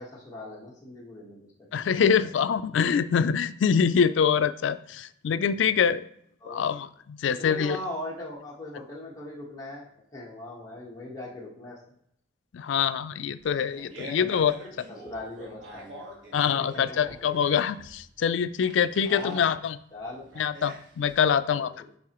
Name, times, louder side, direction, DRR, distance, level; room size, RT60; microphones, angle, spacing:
voice 1, 0.0-2.3 6.4-6.7 7.3-11.8 14.0-14.3 14.9-16.0 16.6-17.1 19.1-19.5 19.9-20.3 21.5-21.7, left 1 dB, 20° left, -4 dB, 1.2 m, -40 dB
voice 2, 1.7-6.0 6.5-7.8 12.5-14.9 16.3-19.8 20.4-21.7, left 7 dB, 80° left, 14 dB, 0.4 m, -25 dB
Fart, 13.4-21.4, right 1 dB, 85° right, 1.6 m, -46 dB
9.5 x 3.8 x 3.0 m, 0.69 s
head